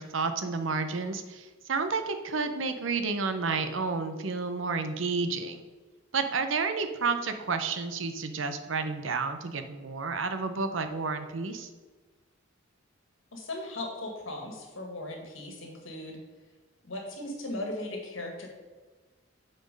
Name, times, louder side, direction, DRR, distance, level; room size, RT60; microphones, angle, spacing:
voice 1, 0.0-5.7 6.1-11.7, right 4 dB, 75° right, 8 dB, 0.7 m, -31 dB
voice 2, 13.3-16.2 16.8-18.5, left 1 dB, 80° left, 1 dB, 1.8 m, -37 dB
7.9 x 4.4 x 5.3 m, 1.3 s
head